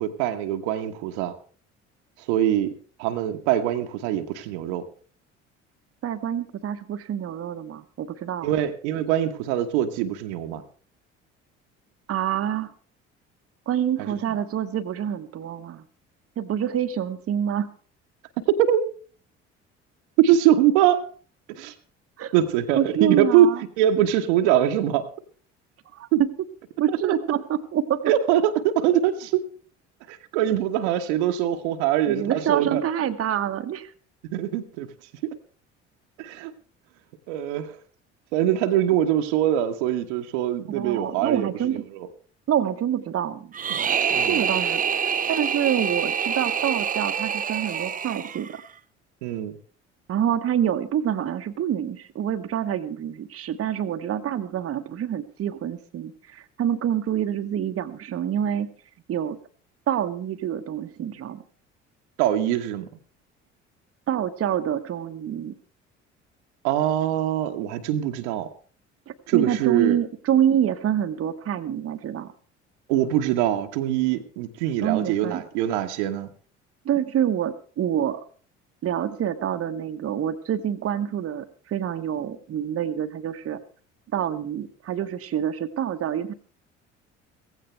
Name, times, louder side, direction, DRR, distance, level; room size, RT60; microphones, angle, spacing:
voice 1, 0.0-1.3 2.3-2.7 3.0-4.8 8.4-10.6 18.6-18.8 20.2-21.0 21.5-21.7 22.3-23.5 23.8-25.1 26.1-26.2 27.0-27.1 28.1-29.4 30.1-32.8 34.3-34.9 36.2-36.5 37.3-37.7 38.3-41.5 43.7-44.4 49.2-49.6 62.2-62.9 66.6-68.5 69.3-70.0 72.9-76.3, right 11 dB, 65° right, 6 dB, 1.2 m, -23 dB
voice 2, 6.0-8.5 12.1-12.7 13.7-15.8 16.4-17.7 22.2-22.3 22.7-23.6 25.9-26.3 26.8-28.1 32.1-33.9 40.7-41.8 42.5-43.5 44.2-48.6 50.1-58.7 59.1-59.4 59.9-61.4 64.1-65.6 69.1-72.3 74.8-75.4 76.8-78.2 78.8-83.6 84.1-86.3, right 10 dB, 40° right, 7 dB, 1.1 m, -26 dB
sound 1, 43.5-48.7, right 7 dB, 25° right, 0.6 m, -26 dB
16.5 x 15.5 x 3.4 m, 0.41 s
figure-of-eight pair, 55°, 36 cm